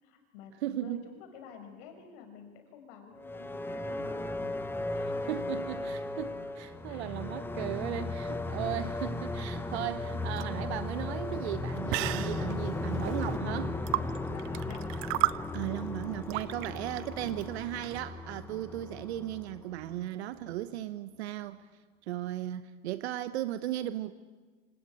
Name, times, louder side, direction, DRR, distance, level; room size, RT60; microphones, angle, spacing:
voice 1, 0.0-4.3 4.8-5.1 5.8-6.1 6.9-7.1 8.1-8.6 13.9-14.9 16.6-16.8, left 6 dB, 60° left, 5 dB, 5.9 m, -51 dB
voice 2, 0.6-1.0 5.3-13.8 15.5-21.6 22.0-24.1, right 13 dB, 75° right, 13 dB, 1.1 m, -36 dB
sound 1, 3.2-20.0, left 2 dB, 5° left, 1.2 m, -36 dB
sound 2, 10.0-18.0, right 19 dB, 40° right, 0.7 m, -35 dB
26.0 x 18.0 x 8.8 m, 1.4 s
supercardioid pair, 140°, 33 cm